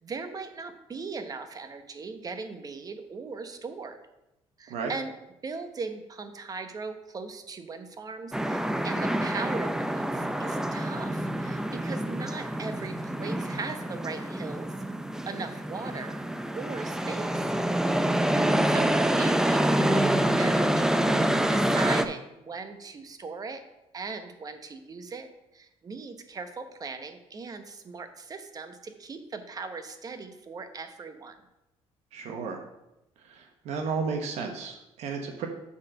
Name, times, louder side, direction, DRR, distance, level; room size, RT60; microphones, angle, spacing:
voice 1, 0.0-4.0 4.6-5.1 5.4-14.7 15.3-16.2 16.5-17.6 18.4-20.9 21.2-23.6 23.9-25.3 25.5-31.4, right 4 dB, 35° right, 8 dB, 0.9 m, -38 dB
sound 1, 8.3-22.1, right 1 dB, 5° right, 0.4 m, -27 dB
voice 2, 32.1-32.6 33.2-35.5, right 5 dB, 80° right, 3 dB, 1.0 m, -33 dB
7.1 x 4.2 x 6.4 m, 0.90 s
cardioid pair, 110°, 11 cm